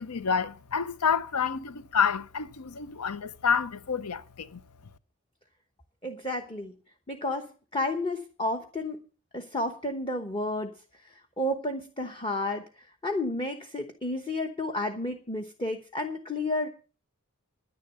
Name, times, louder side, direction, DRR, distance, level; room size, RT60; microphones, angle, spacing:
voice 1, 0.0-4.6, left 6 dB, 90° left, 0.7 m, -28 dB
voice 2, 6.0-6.7 7.1-9.0 9.3-10.7 11.1-16.7, left 1 dB, 25° left, 1.0 m, -31 dB
10.0 x 10.0 x 6.8 m
head